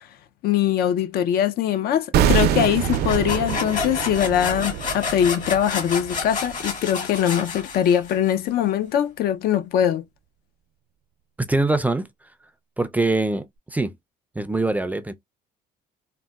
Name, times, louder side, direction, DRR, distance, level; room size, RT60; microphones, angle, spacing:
voice 1, 0.4-10.0, left 10 dB, 65° left, 0.4 m, -22 dB
sound 1, 2.1-7.2 7.4-7.6, right 9 dB, 70° right, 0.5 m, -25 dB
sound 2, 2.6-8.3, left 5 dB, 50° left, 1.4 m, -30 dB
voice 2, 11.4-12.1 12.8-13.5 13.7-13.9 14.4-15.1, right 2 dB, 10° right, 0.3 m, -23 dB
3.8 x 2.1 x 2.2 m
cardioid pair, 110°, 17 cm